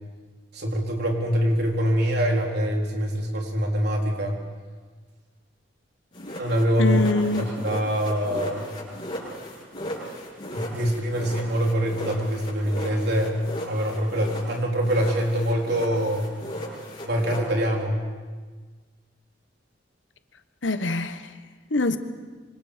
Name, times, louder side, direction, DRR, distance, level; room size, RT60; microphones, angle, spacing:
voice 1, 0.5-4.4 6.3-7.0 7.4-8.7 10.5-13.4 13.6-16.3 17.0-18.0, equal, 60° right, 0 dB, 3.9 m, -24 dB
sound 1, 6.1-14.6 14.8-17.4, equal, 25° left, 7.8 m, -36 dB
voice 2, 6.8-7.5 20.6-21.2 21.7-22.0, left 2 dB, 75° left, 9 dB, 1.3 m, -23 dB
26.0 x 26.0 x 5.2 m, 1.4 s
head